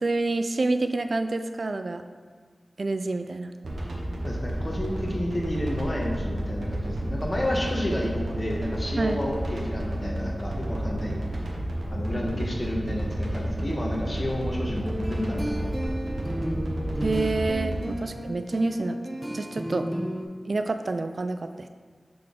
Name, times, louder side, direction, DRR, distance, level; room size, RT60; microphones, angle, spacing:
voice 1, 0.0-2.1 2.8-3.5 9.0-9.2 17.0-19.0 19.3-19.9 20.4-21.7, right 3 dB, 65° right, 8 dB, 0.3 m, -28 dB
sound 1, 3.6-17.7, right 1 dB, 85° right, 0.9 m, -31 dB
voice 2, 4.2-11.2 11.9-15.8 18.0-18.1, left 1 dB, 35° left, -2 dB, 1.3 m, -31 dB
sound 2, 14.6-20.2, equal, 15° right, 0.8 m, -33 dB
6.5 x 4.0 x 3.7 m, 1.5 s
cardioid pair, 45°, 0 cm